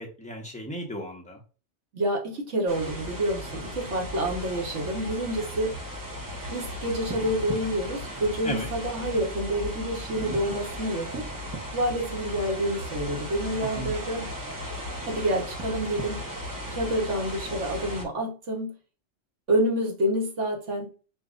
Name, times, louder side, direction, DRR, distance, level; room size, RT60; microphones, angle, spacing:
voice 1, 0.0-1.4 8.4-8.7 13.6-13.9, equal, 5° left, 0 dB, 0.9 m, -35 dB
voice 2, 1.9-5.7 6.5-11.2 11.7-14.3 15.1-16.2 16.7-18.7 19.5-20.9, right 1 dB, 75° right, 0 dB, 1.5 m, -28 dB
sound 1, 2.7-18.0, equal, 20° right, 0.7 m, -36 dB
6.9 x 2.5 x 2.5 m, 0.35 s
omnidirectional pair, 1.2 m